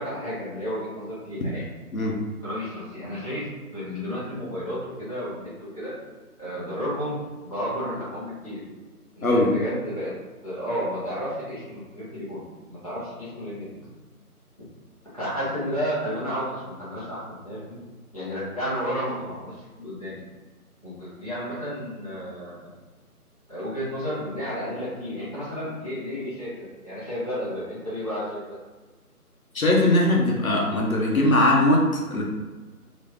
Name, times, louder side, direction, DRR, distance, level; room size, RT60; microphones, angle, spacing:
voice 1, 0.0-1.6 2.4-5.9 6.4-8.6 9.1-13.9 15.1-17.8 18.1-20.2 20.8-22.7 23.5-28.6, equal, 25° left, -11 dB, 1.0 m, -32 dB
voice 2, 29.5-32.2, left 1 dB, 65° left, -2 dB, 1.0 m, -20 dB
3.1 x 2.8 x 3.5 m, 1.3 s
figure-of-eight pair, 170°, 46 cm